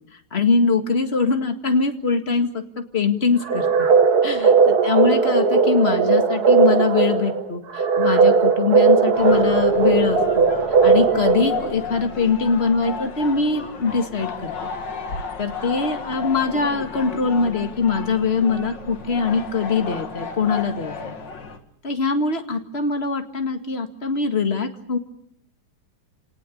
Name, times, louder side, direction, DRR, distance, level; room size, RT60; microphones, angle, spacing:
voice 1, 0.3-2.6 2.9-3.9 4.2-10.5 10.8-14.5 15.4-21.1 21.8-25.0, left 4 dB, 30° left, 6 dB, 2.0 m, -22 dB
sound 1, 3.4-11.9, right 5 dB, 50° right, 2.0 m, -17 dB
sound 2, 9.1-21.6, left 6 dB, 55° left, 2.6 m, -33 dB
28.5 x 18.5 x 8.5 m, 0.73 s
omnidirectional pair, 2.3 m